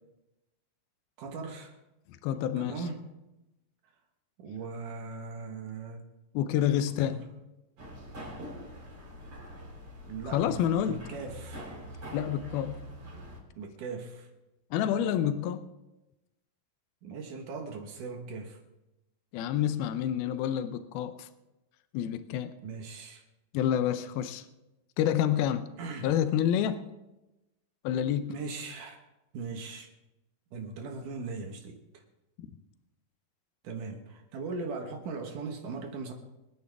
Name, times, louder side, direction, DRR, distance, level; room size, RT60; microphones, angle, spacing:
voice 1, 1.2-1.7 2.6-3.0 4.4-6.1 7.0-7.3 10.1-11.7 13.6-14.3 17.0-18.6 22.6-23.2 25.8-26.1 28.3-29.0 29.3-29.9 30.5-32.0 33.6-36.1, right 4 dB, 65° right, 2.7 m, -39 dB
voice 2, 2.2-2.7 6.3-7.2 10.3-11.1 12.1-12.8 14.7-15.6 19.3-21.3 21.9-22.5 23.5-24.4 25.0-25.7 26.0-26.9 27.8-28.3, left 10 dB, 85° left, 2.6 m, -28 dB
sound 1, 7.8-13.4, equal, 40° right, 4.8 m, -44 dB
26.0 x 9.7 x 3.5 m
omnidirectional pair, 4.2 m